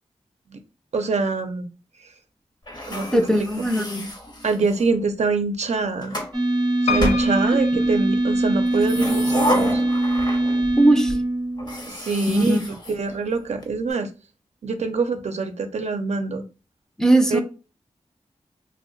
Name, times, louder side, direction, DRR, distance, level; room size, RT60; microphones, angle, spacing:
voice 1, 0.9-1.7 2.9-3.1 3.4-3.5 4.4-6.2 6.8-9.8 11.9-12.6 12.9-14.1 14.6-16.4 17.3-17.4, right 4 dB, 70° right, 0.5 m, -25 dB
sound 1, 2.7-4.9 5.7-6.4 7.0-7.9 8.6-10.8 11.1-11.2 11.6-13.6, left 1 dB, 40° left, 0.8 m, -30 dB
voice 2, 3.1-4.0 10.8-11.1 12.3-12.6 17.0-17.4, right 1 dB, 5° left, 0.5 m, -19 dB
sound 2, 6.3-11.9, right 1 dB, 35° right, 0.7 m, -22 dB
Piano, 6.9-8.9 9.5-10.2 10.5-10.6 10.8-10.9, left 5 dB, 65° left, 0.4 m, -30 dB
2.7 x 2.1 x 3.8 m
wide cardioid pair, 60°, 12 cm